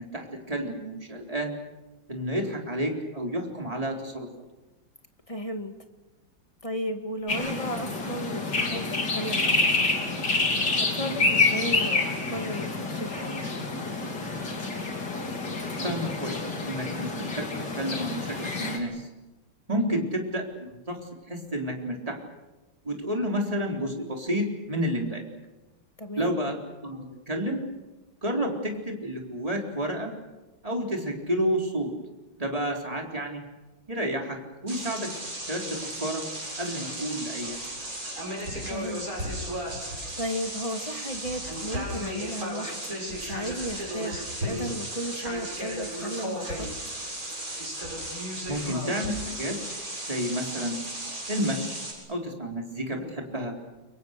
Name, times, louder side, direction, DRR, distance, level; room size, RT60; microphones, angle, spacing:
voice 1, 0.0-1.5 2.1-4.3 15.8-16.4 16.6-17.5 17.7-19.1 19.7-20.4 20.9-21.0 21.3-22.2 22.8-25.2 26.2-27.6 28.2-30.1 30.6-31.9 32.4-33.4 33.9-34.4 34.6-35.1 35.5-36.2 36.6-37.6 48.5-49.5 50.1-50.8 51.3-51.8 52.1-53.5, equal, 15° right, 1 dB, 4.0 m, -30 dB
voice 2, 5.3-5.7 6.6-9.9 10.8-13.4 19.7-20.1 26.0-26.4 38.7-39.1 40.2-46.8, equal, 15° left, 6 dB, 2.0 m, -34 dB
sound 1, 7.3-18.8, left 3 dB, 60° left, 3.7 m, -28 dB
sound 2, 34.7-51.9, right 1 dB, 45° right, 7.9 m, -35 dB
29.5 x 24.0 x 6.7 m, 1.1 s
omnidirectional pair, 2.1 m